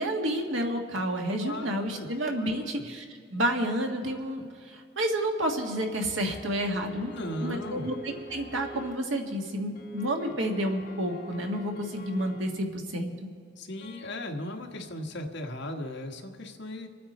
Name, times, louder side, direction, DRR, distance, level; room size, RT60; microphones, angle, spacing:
voice 1, 0.0-3.0 3.3-7.1 7.4-13.1, right 1 dB, 85° right, 2 dB, 1.7 m, -30 dB
voice 2, 1.4-2.1 2.4-2.8 7.1-7.9 13.6-16.9, left 1 dB, 65° left, 2 dB, 1.5 m, -37 dB
sound 1, 6.3-8.9 9.7-12.4 13.8-14.3, equal, 45° left, 1.8 m, -44 dB
26.5 x 9.4 x 4.3 m, 2.2 s
head